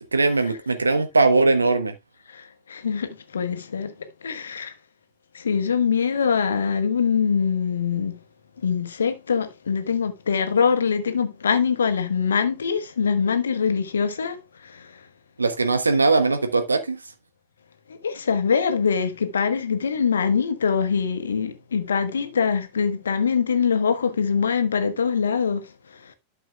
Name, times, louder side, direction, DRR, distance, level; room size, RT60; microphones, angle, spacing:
voice 1, 0.1-1.9 15.4-17.0, right 3 dB, 80° right, 1.2 m, -20 dB
voice 2, 2.3-3.9 4.2-4.7 5.3-8.2 8.6-15.0 17.9-25.7 26.0-26.1, left 6 dB, 70° left, 1.1 m, -23 dB
12.0 x 6.4 x 2.3 m
figure-of-eight pair, 90°, 0 cm